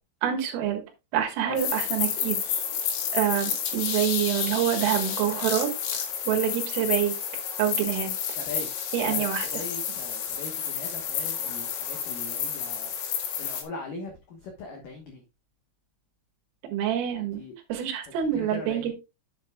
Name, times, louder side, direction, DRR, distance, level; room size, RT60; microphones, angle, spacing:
voice 1, 0.2-0.8 1.1-2.4 3.1-6.0 6.3-7.1 7.6-8.1 8.9-10.0 16.7-17.4 17.7-18.9, right 10 dB, 80° right, 5 dB, 4.2 m, -27 dB
sound 1, 1.6-13.6, left 8 dB, 65° left, 3.1 m, -30 dB
voice 2, 8.4-8.7 9.0-12.9 13.4-15.2 17.2-17.5 18.3-18.9, left 3 dB, 80° left, 3 dB, 1.9 m, -40 dB
9.9 x 7.8 x 2.3 m, 0.25 s
omnidirectional pair, 5.9 m